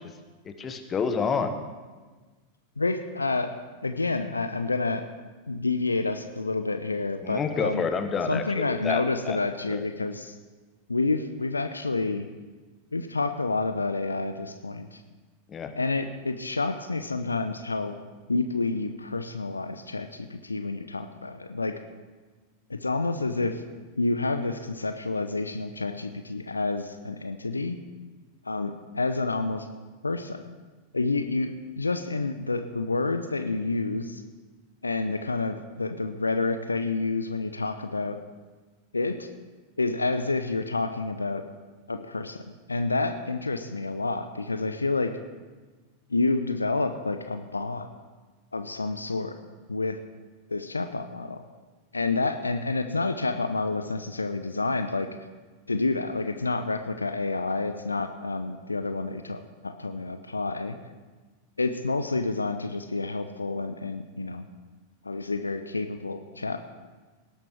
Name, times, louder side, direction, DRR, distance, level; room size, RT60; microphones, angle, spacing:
voice 1, 0.4-1.5 7.2-9.4 9.7-9.9 15.5-15.7, left 5 dB, 25° left, 8 dB, 1.3 m, -29 dB
voice 2, 2.8-3.5 3.8-5.1 5.5-7.9 8.3-10.4 10.9-12.3 12.9-15.0 15.7-18.0 18.3-21.8 22.7-23.6 24.0-27.8 28.4-29.7 30.0-30.4 30.9-34.2 34.8-38.2 38.9-39.3 39.8-41.4 41.9-42.4 42.7-45.2 46.1-47.9 48.5-49.3 49.7-50.0 50.5-51.4 51.9-55.1 55.7-60.8 61.6-64.5 65.0-66.6, left 3 dB, 80° left, 9 dB, 0.8 m, -29 dB
18.5 x 11.5 x 4.6 m, 1.3 s
figure-of-eight pair, 90°, 0 cm